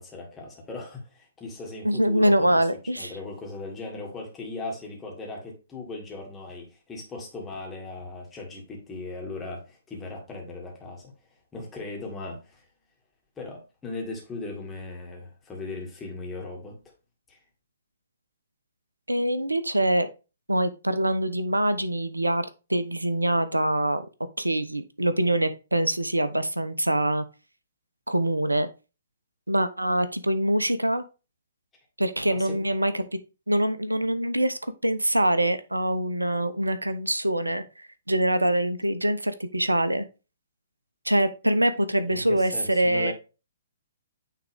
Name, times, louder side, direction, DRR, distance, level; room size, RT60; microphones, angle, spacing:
voice 1, 0.0-2.7 2.9-11.1 11.5-12.7 13.4-16.8 17.3-17.4 32.2-32.7 42.1-43.1, left 3 dB, 10° left, 2.2 m, -38 dB
voice 2, 1.8-3.1 19.1-20.1 20.5-24.1 24.4-27.2 28.1-28.7 29.5-31.0 32.0-33.0 33.5-40.0 41.0-43.1, right 1 dB, 85° right, 0.7 m, -24 dB
9.2 x 3.7 x 3.5 m
figure-of-eight pair, 125°, 0 cm